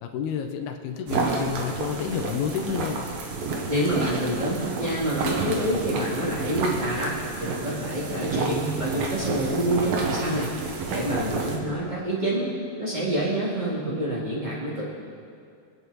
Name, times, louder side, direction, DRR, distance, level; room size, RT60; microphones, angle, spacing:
voice 1, 0.0-3.1, left 7 dB, 75° left, 4 dB, 2.6 m, -30 dB
sound 1, 1.1-11.6, right 3 dB, 65° right, 2.8 m, -30 dB
voice 2, 3.7-7.1 7.4-12.5 12.8-14.9, right 1 dB, 20° right, -7 dB, 1.1 m, -27 dB
28.0 x 9.6 x 4.1 m, 2.3 s
omnidirectional pair, 4.8 m